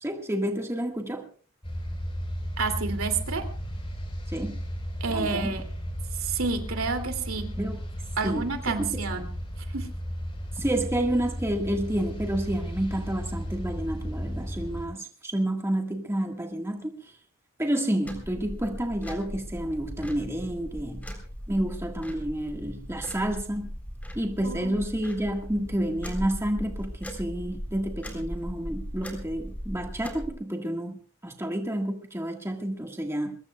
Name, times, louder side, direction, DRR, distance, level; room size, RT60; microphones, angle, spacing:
voice 1, 0.0-1.3 4.3-4.6 5.1-5.5 7.6-7.8 8.2-8.5 8.8-9.0 10.6-16.9 17.6-21.0 21.5-23.7 24.2-31.0 31.2-33.4, right 1 dB, 10° right, 2 dB, 1.7 m, -29 dB
Big Boat, 1.6-14.9, equal, 25° left, 4.2 m, -34 dB
voice 2, 2.6-3.4 5.0-5.6 6.2-7.5 8.2-9.3 9.7-9.9 24.4-24.8, right 4 dB, 75° right, 6 dB, 2.7 m, -29 dB
sound 1, 18.1-30.3, equal, 5° left, 3.7 m, -38 dB
23.0 x 21.0 x 2.3 m, 0.41 s
head